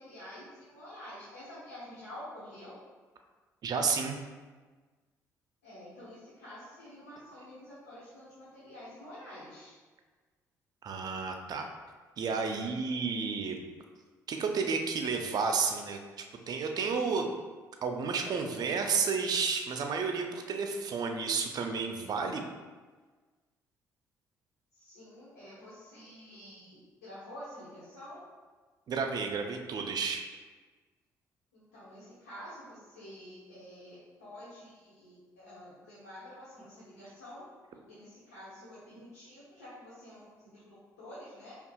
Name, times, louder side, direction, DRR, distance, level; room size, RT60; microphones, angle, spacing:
voice 1, 0.0-2.7 5.6-9.7 24.8-28.2 31.5-37.5 37.9-41.5, left 1 dB, 90° left, -11 dB, 1.1 m, -48 dB
voice 2, 3.6-4.2 10.8-11.7 12.2-13.6 14.3-16.0 16.5-17.3 17.8-22.4 28.9-30.2, right 5 dB, 50° right, 4 dB, 0.5 m, -31 dB
5.4 x 2.4 x 2.3 m, 1.4 s
hypercardioid pair, 50°, 8 cm